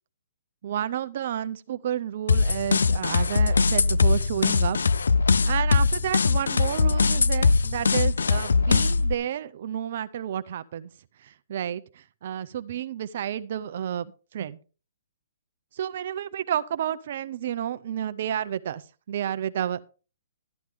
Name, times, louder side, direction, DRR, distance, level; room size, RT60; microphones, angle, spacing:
voice 1, 0.6-4.8 5.5-10.9 11.2-14.6 15.7-18.8 19.1-19.8, right 10 dB, 55° right, 14 dB, 0.5 m, -31 dB
sound 1, 2.3-9.1, left 4 dB, 90° left, 0.4 m, -21 dB
12.5 x 9.3 x 3.4 m, 0.35 s
hypercardioid pair, 145°, 0 cm